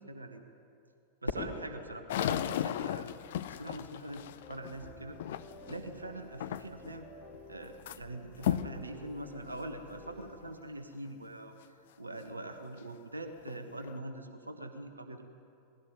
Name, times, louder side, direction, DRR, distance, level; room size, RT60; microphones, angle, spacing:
voice 1, 0.1-0.4 1.2-5.2 5.7-7.1 7.5-15.2, right 1 dB, 80° right, 6 dB, 1.3 m, -43 dB
Fireworks, 1.2-3.6, left 2 dB, 80° left, 3.1 m, -42 dB
sound 1, 2.1-5.9 6.4-6.9 7.3-8.0 8.4-8.8 9.4-9.5 10.2-10.3 12.8-12.9 13.4-14.0, left 11 dB, 55° left, 0.7 m, -35 dB
sound 2, 4.4-10.3, left 2 dB, 20° left, 3.8 m, -53 dB
20.0 x 16.0 x 9.9 m, 2.7 s
figure-of-eight pair, 90°, 0 cm